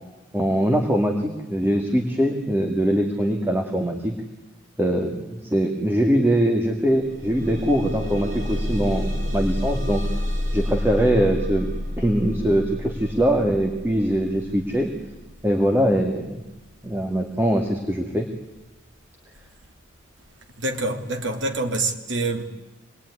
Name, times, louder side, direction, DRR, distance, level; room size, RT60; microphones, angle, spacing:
voice 1, 0.3-4.2 4.8-10.0 10.5-11.7 12.0-14.9 15.4-16.4 16.8-18.3, equal, 10° right, 2.3 m, -22 dB
sound 1, 6.8-17.6 18.3-18.4 18.9-19.0, left 1 dB, 85° right, 6.5 m, -30 dB
voice 2, 20.6-22.4, right 2 dB, 70° right, 2.9 m, -26 dB
26.5 x 21.0 x 9.9 m
head